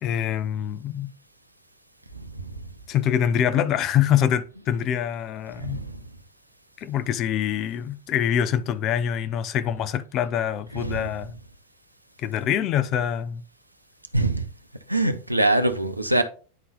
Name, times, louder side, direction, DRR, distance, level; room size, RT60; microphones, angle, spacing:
voice 1, 0.0-1.1 2.9-5.8 6.8-11.4 12.2-13.4, left 9 dB, 35° left, 0.5 m, -25 dB
voice 2, 5.6-6.0 10.8-11.0 14.1-14.5 14.9-16.2, right 2 dB, 85° right, 0.7 m, -24 dB
9.6 x 3.9 x 4.0 m
figure-of-eight pair, 90°, 0 cm